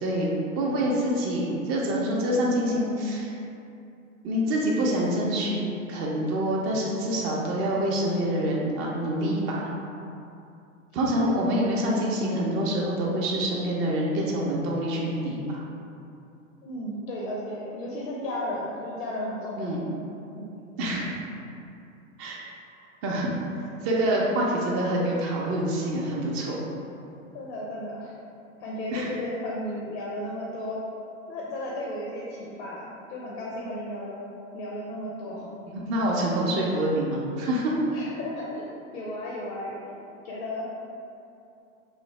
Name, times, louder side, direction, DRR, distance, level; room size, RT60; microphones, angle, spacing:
voice 1, 0.0-3.3 4.2-5.6 5.9-9.7 10.9-15.6 19.6-19.8 20.8-21.1 22.2-22.4 23.0-23.3 23.8-26.6 28.9-29.1 35.3-35.4 35.7-37.7, right 1 dB, 35° right, -3 dB, 0.6 m, -26 dB
voice 2, 16.6-19.7 20.3-20.5 27.3-28.2 28.6-30.8 31.3-34.3 34.5-35.5 37.9-39.8 40.2-40.7, left 1 dB, 50° left, -4 dB, 0.6 m, -34 dB
3.2 x 2.0 x 3.1 m, 2.7 s
hypercardioid pair, 105°, 40 cm